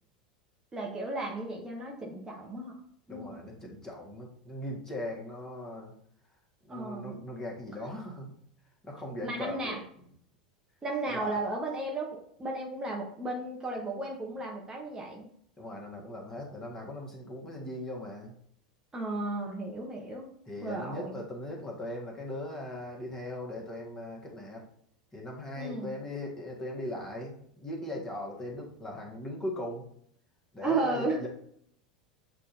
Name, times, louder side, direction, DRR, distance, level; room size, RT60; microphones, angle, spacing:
voice 1, 0.7-2.7 3.1-3.3 6.7-7.2 9.2-9.8 10.8-15.2 18.9-20.3 20.6-21.1 25.6-25.9 30.6-31.2, right 2 dB, 15° right, -2 dB, 0.8 m, -34 dB
voice 2, 3.1-5.9 6.6-8.4 8.8-9.7 11.1-11.4 15.6-18.3 20.4-24.6 25.1-29.9 30.5-31.3, left 1 dB, 15° left, -1 dB, 1.4 m, -39 dB
7.3 x 2.7 x 2.5 m, 0.66 s
figure-of-eight pair, 85°, 4 cm